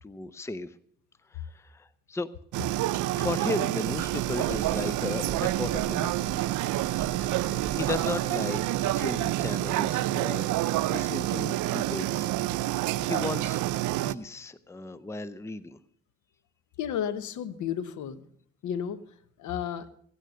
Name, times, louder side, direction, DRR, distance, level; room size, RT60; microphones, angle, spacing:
voice 1, 0.0-0.7 1.3-2.3 3.1-6.2 7.0-12.3 12.7-13.6 14.0-15.8, left 3 dB, 10° left, 16 dB, 0.6 m, -36 dB
sound 1, 2.5-14.1, right 15 dB, 80° right, 0.5 m, -28 dB
sound 2, 3.8-9.2, right 4 dB, 20° right, 6.1 m, -42 dB
voice 2, 16.8-18.2 18.6-19.0 19.4-19.9, left 9 dB, 75° left, 15 dB, 1.0 m, -32 dB
16.5 x 9.1 x 6.4 m, 0.62 s
cardioid pair, 90°, 30 cm